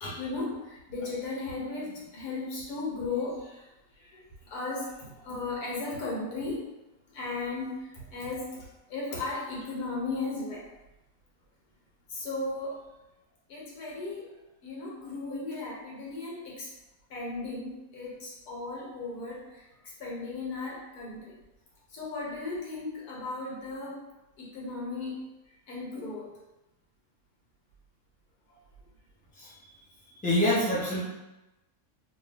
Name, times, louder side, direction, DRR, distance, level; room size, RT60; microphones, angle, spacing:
voice 1, 0.0-3.6 4.0-6.6 7.1-8.5 8.9-10.6 12.1-12.8 13.5-14.3 14.6-16.7 17.1-19.6 20.0-21.3 21.9-24.0 24.4-25.2 25.7-26.3, left 3 dB, 80° left, -5 dB, 1.5 m, -36 dB
voice 2, 30.2-31.0, left 1 dB, 5° left, -8 dB, 0.7 m, -25 dB
3.0 x 2.7 x 3.2 m, 0.99 s
omnidirectional pair, 1.6 m